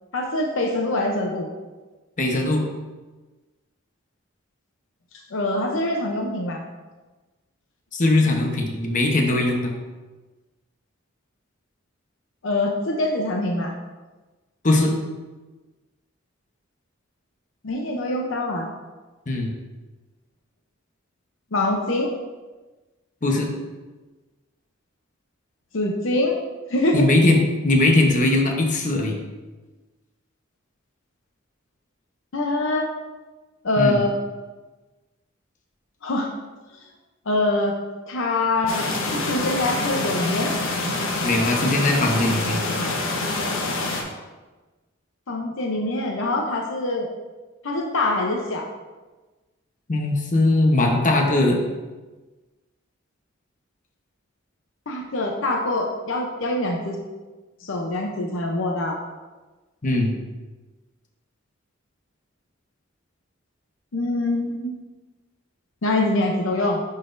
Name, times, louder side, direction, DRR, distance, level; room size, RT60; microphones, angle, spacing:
voice 1, 0.1-1.5 5.3-6.6 12.4-13.7 17.6-18.7 21.5-22.1 25.7-26.4 26.7-27.1 32.3-32.9 33.6-34.1 36.0-36.3 37.3-37.7 38.1-38.9 39.2-40.5 45.3-47.1 47.6-48.7 54.9-57.0 57.6-59.0 63.9-64.7 65.8-66.8, left 2 dB, 70° left, 1 dB, 0.7 m, -24 dB
voice 2, 2.2-2.7 7.9-9.7 14.6-14.9 19.3-19.5 23.2-23.5 26.9-27.4 27.6-29.2 33.8-34.0 41.2-42.6 49.9-51.6 59.8-60.1, left 2 dB, 40° left, 1 dB, 0.9 m, -20 dB
sound 1, 38.7-44.0, left 2 dB, 85° left, 1.0 m, -26 dB
10.5 x 4.0 x 2.6 m, 1.2 s
head